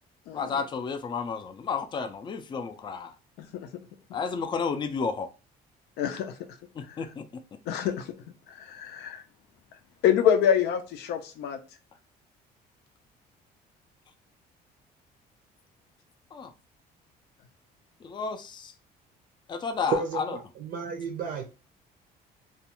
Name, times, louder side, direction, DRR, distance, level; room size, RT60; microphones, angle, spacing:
voice 1, 0.3-3.2 4.1-5.3 6.8-7.4 16.3-16.5 18.0-18.7 19.5-20.4, left 5 dB, 25° left, 0.4 m, -32 dB
voice 2, 3.4-3.7 6.0-6.3 7.7-8.1 8.5-9.2 10.0-11.6, left 9 dB, 80° left, 0.5 m, -26 dB
voice 3, 19.9-21.4, right 5 dB, 60° right, 0.5 m, -32 dB
2.4 x 2.2 x 2.9 m
cardioid pair, 110°, 17 cm